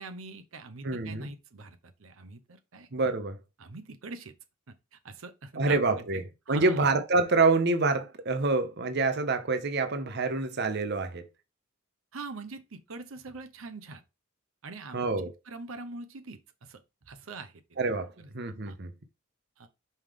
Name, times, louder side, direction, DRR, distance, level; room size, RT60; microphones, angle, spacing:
voice 1, 0.0-2.9 3.6-4.3 4.7-6.9 12.1-14.0 14.6-15.0 15.4-17.5 18.7-18.8 19.6-19.7, right 3 dB, 90° right, 0.8 m, -43 dB
voice 2, 0.8-1.3 2.9-3.3 5.6-6.2 6.5-11.3 14.9-15.3 17.8-18.9, right 3 dB, 55° right, 0.8 m, -27 dB
5.6 x 5.0 x 3.6 m
head